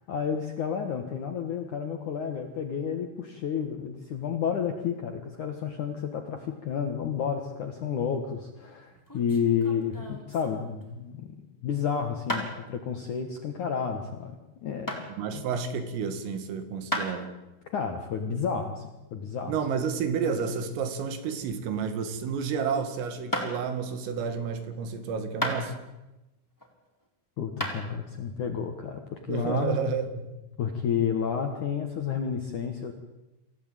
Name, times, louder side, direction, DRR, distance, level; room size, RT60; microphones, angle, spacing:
voice 1, 0.0-11.4 11.6-14.4 14.6-15.1 15.3-15.4 17.7-19.6 27.4-29.8 30.6-32.9, left 7 dB, 65° left, 5 dB, 2.0 m, -31 dB
sound 1, 8.9-10.9 12.3-12.5 14.9-15.0 16.9-17.2 20.4-21.8 22.1-22.4 23.3-23.5 25.4-26.0 26.6-27.1 27.6-27.8, equal, 5° left, 3.4 m, -33 dB
voice 2, 15.2-17.4 19.5-25.8 29.3-30.2, right 6 dB, 85° right, 9 dB, 4.8 m, -30 dB
26.5 x 16.5 x 9.1 m, 1.0 s
omnidirectional pair, 5.8 m